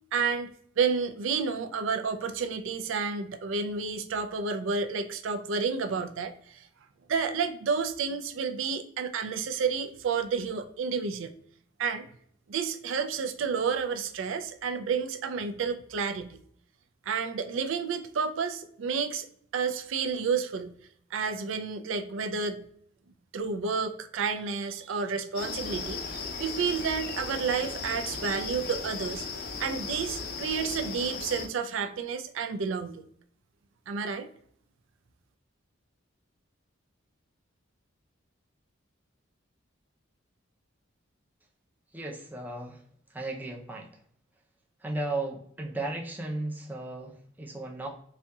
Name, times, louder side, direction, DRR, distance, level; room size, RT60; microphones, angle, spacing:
voice 1, 0.1-0.5 0.8-6.7 7.1-11.3 11.8-12.1 12.5-16.4 17.1-19.3 19.5-20.7 21.1-22.6 23.3-29.3 29.6-33.0 33.9-34.3, right 5 dB, 70° right, 7 dB, 0.4 m, -30 dB
sound 1, 25.4-31.5, left 4 dB, 45° left, 0.5 m, -36 dB
voice 2, 41.9-42.8 43.1-43.9 44.8-47.9, right 2 dB, 10° right, -1 dB, 0.5 m, -35 dB
4.1 x 2.7 x 2.3 m, 0.64 s
head